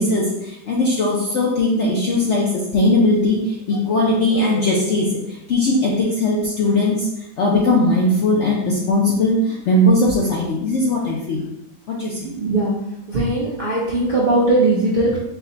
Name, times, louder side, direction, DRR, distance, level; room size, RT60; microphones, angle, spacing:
voice 1, 0.0-11.5 11.9-12.3, left 1 dB, 65° left, -3 dB, 0.7 m, -19 dB
voice 2, 12.2-12.7 13.1-15.2, right 2 dB, 50° right, -5 dB, 0.6 m, -19 dB
4.7 x 2.2 x 3.8 m, 0.85 s
omnidirectional pair, 1.9 m